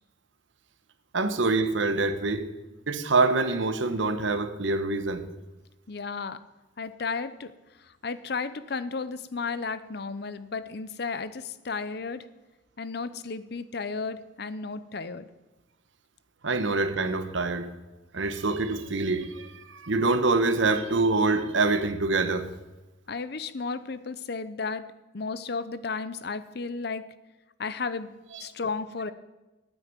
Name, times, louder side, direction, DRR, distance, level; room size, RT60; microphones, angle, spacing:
voice 1, 1.1-2.5 2.9-5.3 16.4-17.7 18.1-22.5 28.3-28.4, right 3 dB, 75° right, 10 dB, 1.1 m, -25 dB
voice 2, 5.9-6.4 6.8-7.5 7.8-12.3 12.8-15.3 23.1-24.9 25.1-27.1 27.6-28.1 28.4-29.1, left 4 dB, 55° left, 14 dB, 0.6 m, -33 dB
9.6 x 9.2 x 8.8 m, 1.1 s
head